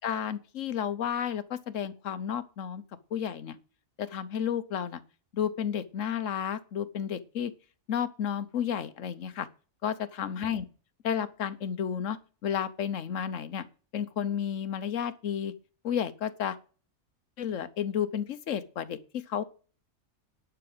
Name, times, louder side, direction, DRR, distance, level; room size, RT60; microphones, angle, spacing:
voice 1, 0.0-2.8 3.1-3.6 4.0-5.0 5.3-7.5 7.9-9.5 9.8-10.6 11.0-13.6 13.9-15.5 15.8-16.6 17.4-19.4, left 8 dB, 65° left, 1.2 m, -32 dB
11.0 x 5.9 x 7.8 m
omnidirectional pair, 1.5 m